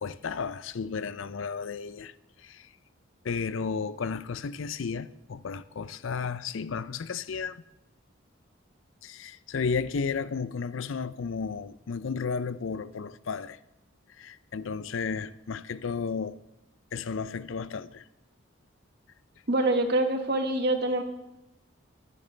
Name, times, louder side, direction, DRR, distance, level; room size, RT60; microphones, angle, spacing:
voice 1, 0.0-2.7 3.2-7.6 9.0-13.6 14.2-16.4 16.9-18.0, left 5 dB, 75° left, 0.5 m, -33 dB
voice 2, 19.5-21.0, right 1 dB, 55° right, 1.6 m, -25 dB
22.5 x 10.5 x 3.3 m
head